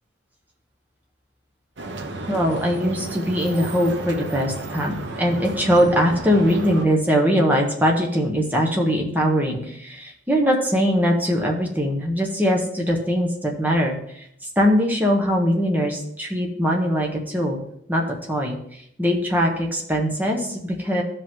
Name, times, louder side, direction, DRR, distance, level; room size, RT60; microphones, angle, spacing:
sound 1, 1.8-6.8, right 2 dB, 75° right, 1.0 m, -33 dB
voice 1, 2.3-14.0 14.6-17.6 17.9-18.6 19.0-21.0, equal, 10° right, 0 dB, 1.3 m, -21 dB
14.5 x 5.3 x 3.8 m, 0.73 s
head